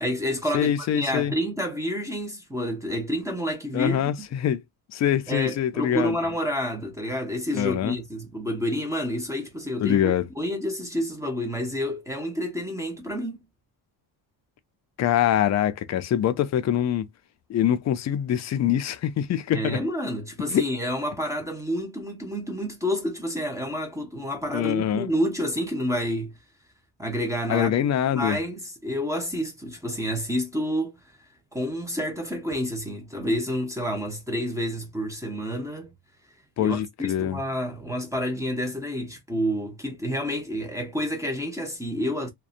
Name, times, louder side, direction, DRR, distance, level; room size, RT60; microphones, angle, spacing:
voice 1, 0.0-4.1 5.3-13.4 19.5-26.3 27.0-27.7 28.1-30.9 31.5-35.9 36.6-42.3, equal, 5° right, 0.7 m, -29 dB
voice 2, 0.5-1.3 3.7-4.6 4.9-6.2 7.5-8.0 9.8-10.3 15.0-17.1 17.5-19.8 20.5-20.6 24.5-25.1 27.5-28.4 36.6-37.4, left 10 dB, 40° left, 0.4 m, -24 dB
2.6 x 2.2 x 2.4 m
cardioid pair, 130°, 46 cm